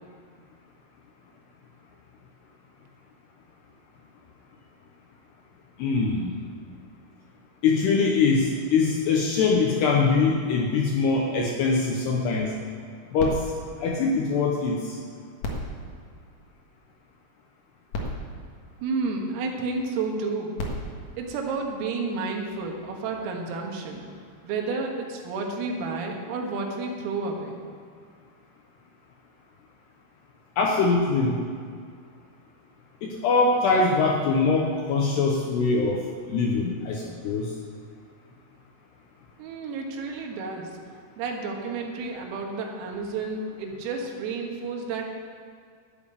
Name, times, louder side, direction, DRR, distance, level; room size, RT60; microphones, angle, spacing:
voice 1, 5.8-6.3 7.6-12.5 13.1-13.4 13.8-15.0 30.6-31.4 33.0-36.0 36.3-37.5, left 4 dB, 80° left, 0 dB, 2.5 m, -23 dB
sound 1, 13.2-14.8 15.3-17.0 17.6-17.7 17.9-19.5 20.3-22.1 22.8-22.9, left 1 dB, 60° left, 2.0 m, -37 dB
voice 2, 18.8-20.6 21.2-24.0 24.4-27.6 39.4-40.8 41.2-45.1, right 4 dB, 85° right, 1 dB, 4.2 m, -31 dB
12.5 x 7.2 x 8.6 m, 2.2 s
omnidirectional pair, 5.9 m